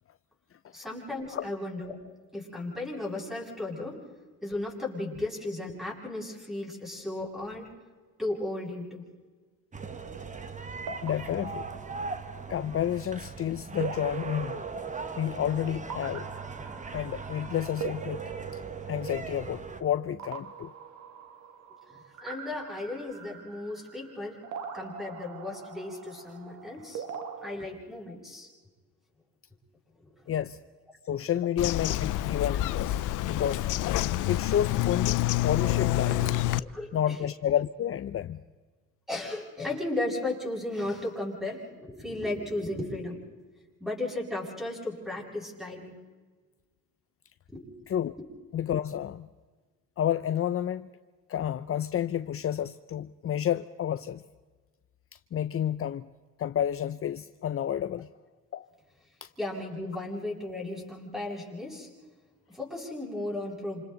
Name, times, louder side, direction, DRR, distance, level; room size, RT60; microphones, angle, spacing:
voice 1, 0.7-2.0 2.3-4.0 4.4-7.7 8.2-9.1 21.9-24.4 24.7-27.0 27.4-28.5 30.0-30.3 31.2-31.3 34.5-34.6 35.7-36.2 36.6-37.2 39.1-43.2 43.8-45.9 47.5-47.6 59.4-61.9 62.5-63.8, left 2 dB, ahead, -2 dB, 7.7 m, -35 dB
sound 1, 9.7-19.8, right 4 dB, 25° right, 1.4 m, -40 dB
sound 2, 9.8-27.5, right 6 dB, 70° right, 2.5 m, -42 dB
voice 2, 11.0-11.7 12.5-14.6 15.2-16.3 16.9-18.2 18.5-18.6 18.9-20.7 30.3-30.6 31.0-33.0 33.3-33.7 34.2-36.4 36.9-38.4 47.9-48.1 48.5-49.3 50.0-50.9 51.3-54.2 55.1-56.1 56.4-58.1 58.5-58.7 59.2-59.3, left 10 dB, 45° left, 12 dB, 0.6 m, -30 dB
Bird vocalization bird call bird song, 31.6-36.6, left 15 dB, 85° left, 0.7 m, -27 dB
28.0 x 28.0 x 4.0 m, 1.4 s
cardioid pair, 90°, 30 cm